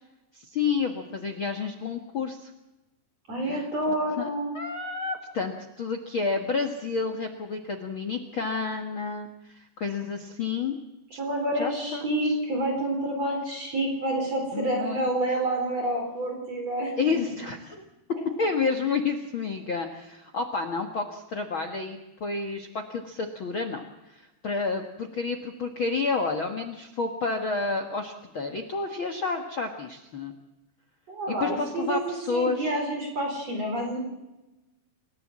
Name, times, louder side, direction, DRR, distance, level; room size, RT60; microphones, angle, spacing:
voice 1, 0.3-2.5 3.4-3.7 4.2-4.3 4.5-10.7 11.1-11.2 11.5-12.1 14.5-15.1 17.0-17.8 18.4-30.3 31.4-32.8, left 4 dB, 70° left, 6 dB, 1.2 m, -30 dB
voice 2, 3.3-4.6 11.2-17.2 31.1-34.0, right 1 dB, 40° right, 2 dB, 5.4 m, -28 dB
28.5 x 14.5 x 7.6 m, 0.99 s
omnidirectional pair, 4.8 m